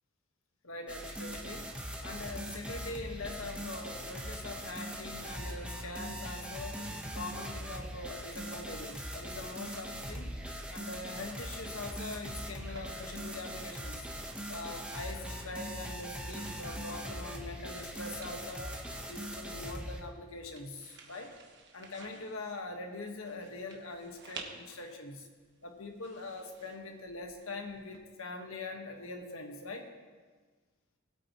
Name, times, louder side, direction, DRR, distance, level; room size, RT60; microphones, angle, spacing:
voice 1, 0.6-1.7 2.0-6.8 7.1-10.3 10.7-14.1 14.5-18.8 19.1-21.3 21.7-25.3 25.6-29.9, left 2 dB, 85° left, 3 dB, 1.4 m, -43 dB
sound 1, 0.9-20.0, equal, 5° right, 1.0 m, -41 dB
sound 2, 12.5-28.0, right 4 dB, 60° right, 1.3 m, -56 dB
20.0 x 8.6 x 3.0 m, 1.4 s
head